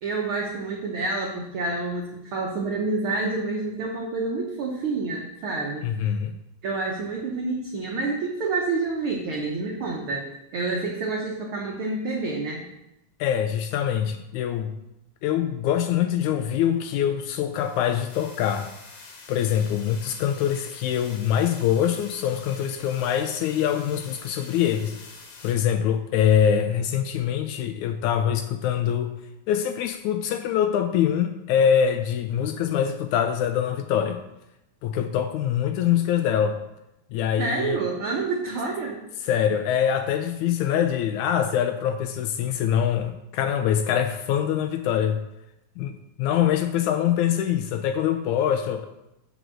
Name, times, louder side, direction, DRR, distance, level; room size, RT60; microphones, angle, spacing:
voice 1, 0.0-6.1 6.6-10.3 10.5-12.6 37.4-39.1, right 3 dB, 85° right, 0 dB, 1.1 m, -28 dB
voice 2, 5.8-6.3 13.2-14.7 15.2-18.7 19.3-24.9 25.4-29.1 29.5-34.2 34.8-36.6 37.1-37.8 39.3-45.2 45.8-48.9, left 9 dB, 80° left, 7 dB, 1.8 m, -24 dB
sound 1, 17.5-25.5, left 4 dB, 60° left, 1.8 m, -46 dB
8.1 x 5.1 x 6.1 m, 0.89 s
omnidirectional pair, 3.7 m